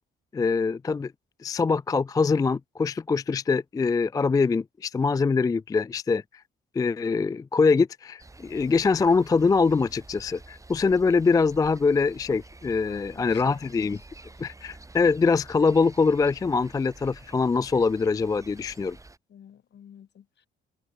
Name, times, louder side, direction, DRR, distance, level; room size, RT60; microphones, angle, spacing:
voice 1, 0.3-1.1 1.4-6.2 6.7-14.0 14.4-19.0, left 4 dB, 20° left, 0.3 m, -23 dB
sound 1, 8.2-19.2, right 2 dB, 15° right, 3.1 m, -49 dB
voice 2, 12.8-14.5 19.3-20.5, left 9 dB, 60° left, 6.4 m, -51 dB
cardioid pair, 90°, 20 cm